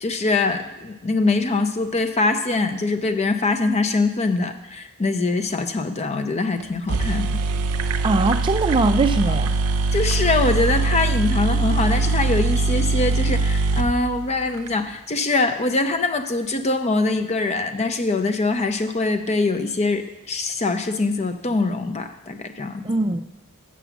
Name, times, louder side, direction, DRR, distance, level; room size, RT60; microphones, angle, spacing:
voice 1, 0.0-7.4 9.9-22.8, left 3 dB, 30° left, 8 dB, 0.6 m, -23 dB
sound 1, 6.6-6.7 6.9-14.7, right 3 dB, 90° right, 0.5 m, -22 dB
voice 2, 8.0-9.6 22.8-23.2, right 2 dB, 25° right, 8 dB, 0.3 m, -21 dB
7.1 x 6.2 x 7.0 m, 0.91 s
head